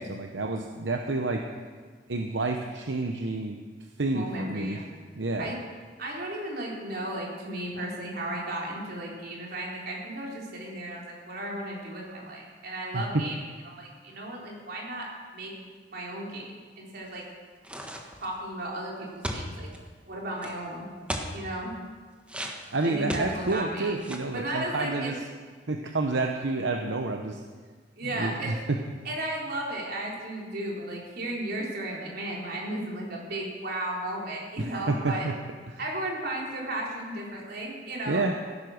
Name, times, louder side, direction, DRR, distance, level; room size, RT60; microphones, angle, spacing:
voice 1, 0.0-1.4 2.1-3.6 4.0-4.8 5.1-5.5 12.9-13.2 22.7-25.1 25.7-27.4 28.0-28.8 34.6-35.3 35.7-35.8 38.1-38.3, right 3 dB, 80° right, 4 dB, 0.9 m, -29 dB
voice 2, 4.1-4.9 5.4-5.6 6.0-13.4 13.6-15.5 15.9-16.5 16.8-17.2 18.2-19.7 20.1-20.9 21.3-21.8 22.8-24.0 24.3-25.2 28.0-28.5 29.0-35.3 35.8-38.4, right 1 dB, 60° right, -2 dB, 3.8 m, -35 dB
sound 1, 17.6-18.3 19.2-19.8 20.4-20.5 21.1-21.4 22.3-23.6 24.0-24.3, equal, 5° right, 1.4 m, -35 dB
16.0 x 11.0 x 6.5 m, 1.5 s
head